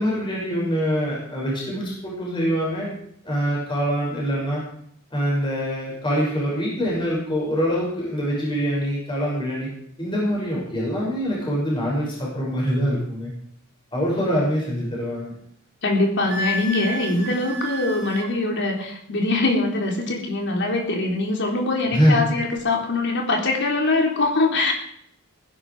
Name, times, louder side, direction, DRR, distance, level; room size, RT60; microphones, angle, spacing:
voice 1, 0.0-2.9 3.2-4.6 5.1-9.7 10.0-13.3 13.9-15.3 21.9-22.2, equal, 25° left, -4 dB, 6.5 m, -24 dB
voice 2, 15.8-24.7, left 2 dB, 55° left, 1 dB, 3.8 m, -23 dB
Wind instrument woodwind instrument, 16.3-18.3, right 1 dB, 90° right, 3.5 m, -31 dB
19.5 x 11.5 x 5.0 m, 0.68 s
head